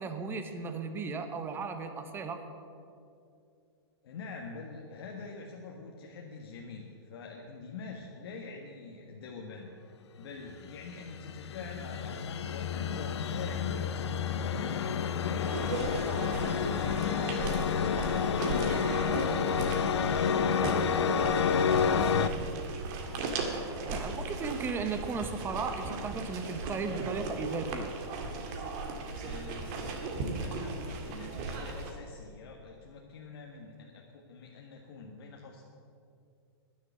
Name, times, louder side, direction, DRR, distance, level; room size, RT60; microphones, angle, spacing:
voice 1, 0.0-2.4 23.9-27.9, right 4 dB, 15° right, 7 dB, 1.1 m, -35 dB
voice 2, 4.0-9.7 10.2-15.7 16.0-21.8 29.1-35.6, left 4 dB, 65° left, 0 dB, 1.5 m, -44 dB
sound 1, 10.7-22.3, left 7 dB, 80° left, 0.8 m, -29 dB
sound 2, 15.5-31.9, right 3 dB, 40° right, 2.0 m, -37 dB
10.5 x 10.0 x 8.2 m, 2.5 s
hypercardioid pair, 150°, 14 cm